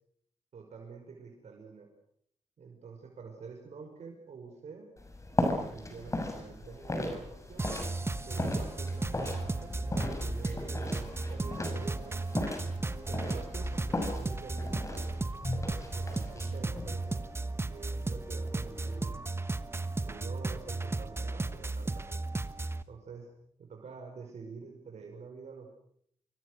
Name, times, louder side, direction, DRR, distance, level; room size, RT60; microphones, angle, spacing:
voice 1, 0.5-1.9 2.6-4.9 5.6-7.7 8.2-12.2 12.9-15.5 15.8-17.2 17.5-19.2 20.0-22.3 22.9-23.3 23.6-25.8, right 5 dB, 70° right, 3 dB, 5.5 m, -48 dB
sound 1, 5.0-19.0, left 1 dB, 25° left, 6.8 m, -37 dB
sound 2, 7.6-22.8, right 2 dB, 20° right, 1.3 m, -35 dB
26.5 x 24.0 x 6.5 m, 0.67 s
cardioid pair, 95°, 12 cm